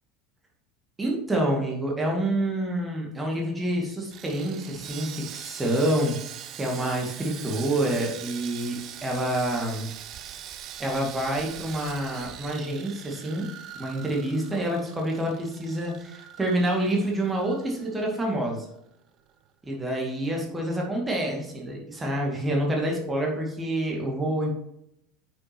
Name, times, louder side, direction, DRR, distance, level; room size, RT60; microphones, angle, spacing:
voice 1, 1.0-6.2 6.5-9.9 10.8-13.5 13.8-18.7 19.7-24.5, right 1 dB, 15° right, -1 dB, 2.2 m, -27 dB
Sawing, 4.1-18.4 18.6-18.8 19.3-19.4, right 10 dB, 40° right, 0.6 m, -42 dB
9.3 x 6.3 x 3.0 m, 0.76 s
figure-of-eight pair, 75°, 0 cm